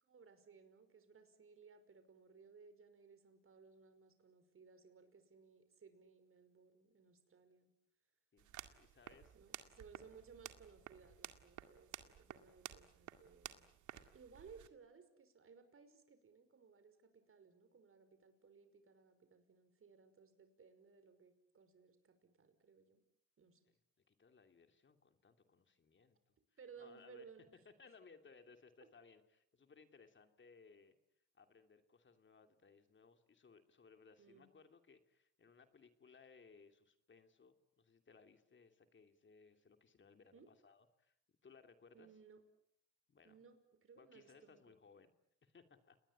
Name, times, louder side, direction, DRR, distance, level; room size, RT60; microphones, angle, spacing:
voice 1, 0.1-7.7 9.3-13.7 14.1-23.0 23.4-23.6 26.6-27.5 34.2-34.5 40.3-40.5 41.9-42.4 43.2-44.7, right 5 dB, 45° right, 9 dB, 5.6 m, -62 dB
sound 1, 8.4-14.7, right 11 dB, 75° right, 2.1 m, -54 dB
voice 2, 8.8-9.3 23.7-23.8 24.1-26.4 26.8-27.3 27.6-31.0 31.3-41.1 41.4-42.1 43.1-43.4 44.0-45.1 45.4-46.0, left 5 dB, 40° left, 7 dB, 2.9 m, -64 dB
30.0 x 20.5 x 8.7 m, 0.74 s
cardioid pair, 90°, 30 cm